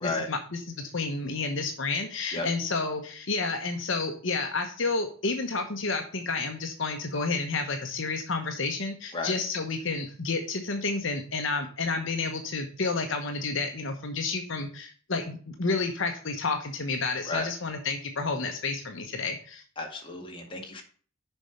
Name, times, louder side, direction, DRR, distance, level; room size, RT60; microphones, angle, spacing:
voice 1, 0.0-19.6, left 3 dB, 60° left, 4 dB, 1.0 m, -30 dB
voice 2, 19.8-20.8, left 2 dB, 25° left, 1 dB, 1.9 m, -33 dB
7.0 x 5.5 x 7.1 m, 0.43 s
head